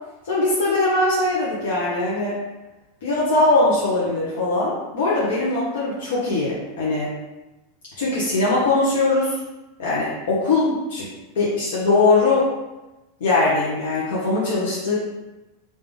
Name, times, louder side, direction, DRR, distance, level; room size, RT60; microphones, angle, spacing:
voice 1, 0.2-2.4 3.0-7.1 8.0-9.4 9.8-11.1 11.3-12.5 13.2-14.9, left 2 dB, 85° left, -8 dB, 1.1 m, -21 dB
3.4 x 2.8 x 3.6 m, 1.1 s
supercardioid pair, 155°, 0 cm